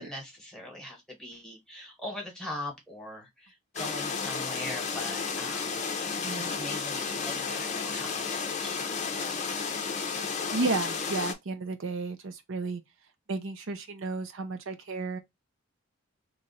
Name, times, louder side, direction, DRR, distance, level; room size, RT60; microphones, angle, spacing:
voice 1, 0.0-9.5, left 1 dB, 5° left, 1.2 m, -41 dB
sound 1, 3.7-11.3, left 5 dB, 30° left, 0.6 m, -32 dB
voice 2, 6.1-6.6 10.5-12.8 13.3-15.2, right 3 dB, 60° right, 0.5 m, -33 dB
3.0 x 2.4 x 4.1 m
head